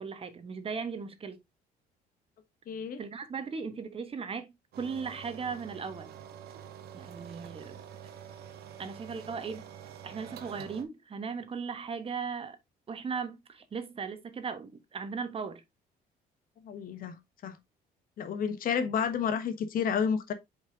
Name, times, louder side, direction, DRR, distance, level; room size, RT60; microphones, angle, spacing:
voice 1, 0.0-1.4 3.0-6.1 6.9-7.8 8.8-9.6 10.0-12.6 12.9-15.6, right 5 dB, 35° right, 1.3 m, -37 dB
voice 2, 2.7-3.0 16.6-17.6 18.2-20.3, left 7 dB, 55° left, 1.2 m, -31 dB
sound 1, 4.7-10.8, right 9 dB, 70° right, 1.2 m, -47 dB
5.2 x 5.0 x 3.6 m
cardioid pair, 110°, 17 cm